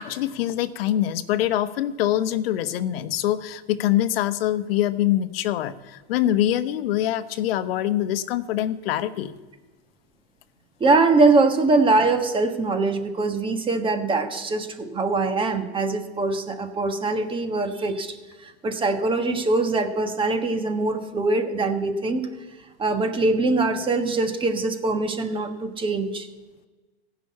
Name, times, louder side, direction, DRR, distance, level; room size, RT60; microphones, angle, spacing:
voice 1, 0.0-9.3, left 12 dB, 65° left, 12 dB, 1.0 m, -24 dB
voice 2, 10.8-22.3 22.8-26.3, right 3 dB, 15° right, 6 dB, 1.4 m, -23 dB
15.5 x 6.2 x 8.5 m, 1.2 s
hypercardioid pair, 125°, 32 cm